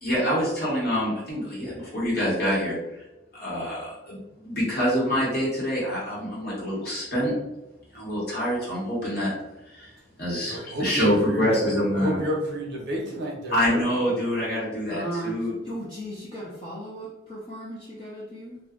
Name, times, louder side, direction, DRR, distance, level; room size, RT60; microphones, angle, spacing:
voice 1, 0.0-2.7 3.3-7.3 7.9-9.3 9.7-9.9 10.2-12.2 13.5-15.5, equal, 50° left, -6 dB, 1.3 m, -26 dB
voice 2, 10.4-11.6 11.9-13.8, equal, 55° right, 0 dB, 0.7 m, -30 dB
voice 3, 14.9-15.4 15.6-18.6, right 1 dB, 25° left, -6 dB, 0.5 m, -36 dB
2.5 x 2.2 x 3.6 m, 0.95 s
head